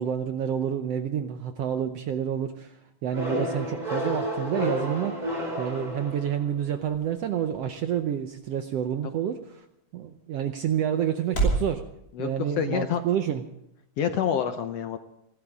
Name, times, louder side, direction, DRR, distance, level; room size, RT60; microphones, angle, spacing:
voice 1, 0.0-9.6 9.9-11.8 12.2-13.4, right 9 dB, 75° right, 7 dB, 1.5 m, -29 dB
sound 1, 3.1-6.7, equal, 10° right, 4.5 m, -31 dB
sound 2, 5.4-11.7, right 3 dB, 25° left, 5.8 m, -35 dB
voice 2, 12.6-13.0 14.0-15.0, left 8 dB, 70° left, 8 dB, 1.6 m, -27 dB
29.5 x 12.0 x 3.6 m, 0.80 s
omnidirectional pair, 3.6 m